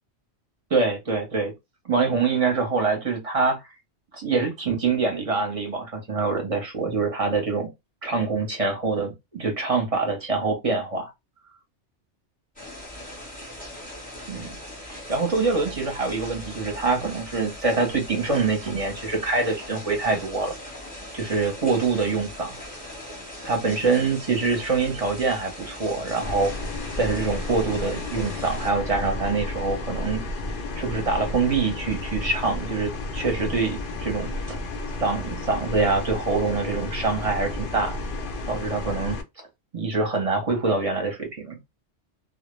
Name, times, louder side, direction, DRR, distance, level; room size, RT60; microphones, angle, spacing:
voice 1, 0.7-1.5 1.8-3.6 4.1-7.7 8.0-11.1 14.3-14.5 14.9-20.5 21.1-22.6 23.4-26.5 27.0-30.2 30.8-34.6 35.0-38.0 38.5-39.5 39.7-41.6, right 4 dB, 35° right, 0.7 m, -25 dB
sound 1, 12.6-28.7, left 1 dB, 10° left, 0.7 m, -40 dB
sound 2, 26.2-39.2, left 2 dB, 60° left, 0.6 m, -32 dB
2.1 x 2.0 x 3.0 m
omnidirectional pair, 1.2 m